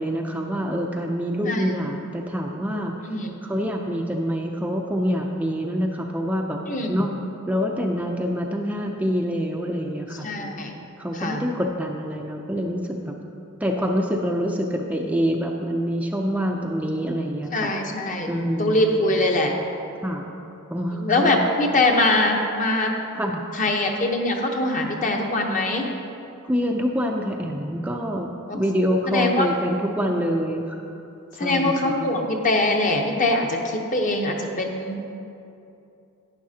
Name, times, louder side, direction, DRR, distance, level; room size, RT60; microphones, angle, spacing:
voice 1, 0.0-3.0 3.4-6.6 6.9-7.1 7.5-10.5 11.0-13.1 13.6-17.7 18.3-18.8 20.0-20.2 20.7-21.4 23.1-23.4 26.4-30.8 31.3-31.9, equal, 5° right, 0 dB, 0.4 m, -26 dB
voice 2, 6.7-7.1 10.2-10.7 11.1-11.4 17.5-18.3 18.6-19.5 20.9-22.9 23.5-25.9 28.5-28.6 29.1-29.5 31.4-35.0, left 2 dB, 35° left, 2 dB, 0.9 m, -23 dB
11.0 x 9.5 x 2.8 m, 2.7 s
head